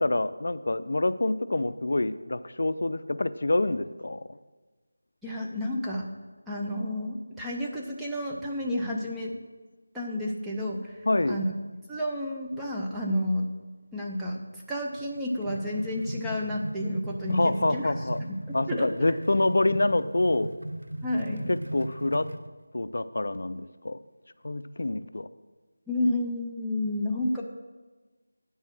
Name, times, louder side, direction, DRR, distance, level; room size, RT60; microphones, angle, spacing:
voice 1, 0.0-4.2 11.1-11.4 17.3-18.2 18.5-20.5 21.5-22.3 22.7-24.0 24.4-25.3, left 2 dB, 60° left, 13 dB, 0.4 m, -26 dB
voice 2, 5.2-6.1 6.5-9.4 9.9-11.5 11.9-13.5 13.9-17.9 18.2-19.2 21.0-21.5 25.9-27.4, left 1 dB, 5° right, -5 dB, 0.5 m, -31 dB
sound 1, 15.0-22.5, right 1 dB, 90° right, 0.6 m, -37 dB
9.4 x 5.5 x 6.1 m, 1.3 s
figure-of-eight pair, 175°, 0 cm